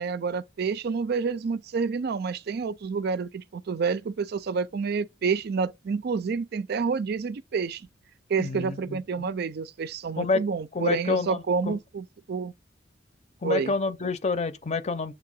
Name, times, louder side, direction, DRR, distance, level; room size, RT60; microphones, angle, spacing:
voice 1, 0.0-7.8 8.3-12.5 13.4-13.7, right 5 dB, 55° right, 0.4 m, -29 dB
voice 2, 8.4-9.3 10.2-10.4 10.7-11.8 13.4-15.1, left 4 dB, 35° left, 0.6 m, -28 dB
7.2 x 2.7 x 5.3 m
head